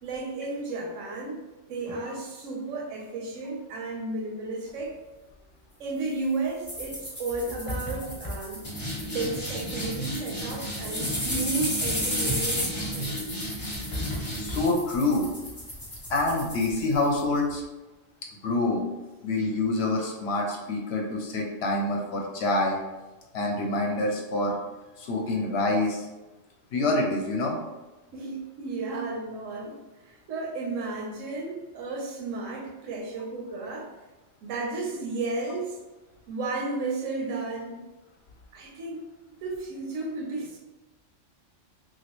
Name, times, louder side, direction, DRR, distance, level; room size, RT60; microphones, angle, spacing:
voice 1, 0.0-5.0 5.8-8.6 9.1-13.3 28.1-33.9 34.4-35.8 36.3-37.8 38.5-39.1 39.4-40.6, right 3 dB, 85° right, 1 dB, 1.1 m, -33 dB
sound 1, 6.7-17.2, equal, 20° left, 0.7 m, -32 dB
voice 2, 14.3-15.3 16.1-17.6 18.4-18.8 19.2-22.8 23.3-24.6 25.0-26.1 26.7-27.6, left 2 dB, 65° left, 0 dB, 0.8 m, -26 dB
3.0 x 2.7 x 2.9 m, 1.1 s
omnidirectional pair, 1.3 m